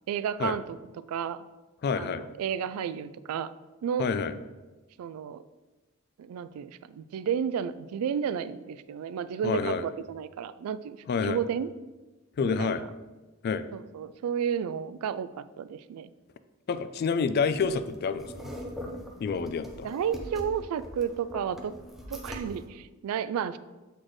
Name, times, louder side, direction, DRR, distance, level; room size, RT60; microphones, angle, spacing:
voice 1, 0.1-0.8 1.1-1.4 2.0-3.5 3.8-4.1 5.0-5.4 6.2-11.0 11.2-11.7 12.4-12.8 13.7-16.1 19.8-21.7 22.1-23.6, right 8 dB, 90° right, 17 dB, 0.3 m, -32 dB
voice 2, 1.8-2.2 4.0-4.3 9.4-9.8 11.1-11.4 12.4-12.8 13.4-13.7 16.7-18.3 19.2-19.9, left 5 dB, 50° left, 12 dB, 0.3 m, -28 dB
sound 1, 17.5-22.6, equal, ahead, 0.6 m, -41 dB
7.8 x 4.2 x 3.1 m, 1.2 s
head